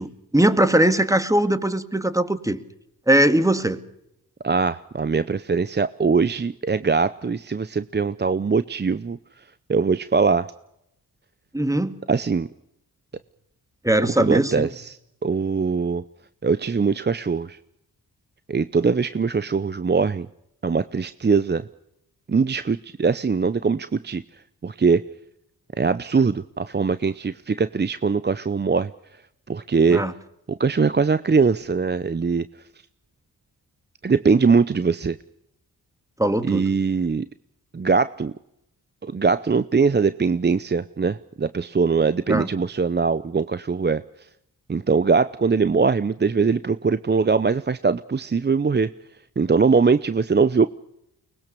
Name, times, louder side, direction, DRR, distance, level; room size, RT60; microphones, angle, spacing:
voice 1, 0.0-2.6 3.1-3.8 11.5-12.0 13.8-14.7 29.9-30.1 36.2-36.7 42.3-42.5, right 1 dB, 10° right, 10 dB, 2.0 m, -20 dB
voice 2, 4.4-9.2 9.7-10.5 12.1-12.5 14.2-16.0 16.4-17.6 18.5-20.3 20.6-21.7 22.3-24.2 24.6-25.0 25.8-28.9 29.5-30.0 30.5-32.4 34.0-35.2 36.4-37.3 37.7-38.3 39.0-44.0 44.7-48.9 49.4-50.7, right 5 dB, 25° right, 14 dB, 0.7 m, -21 dB
23.5 x 20.0 x 6.9 m, 0.81 s
supercardioid pair, 45°, 38 cm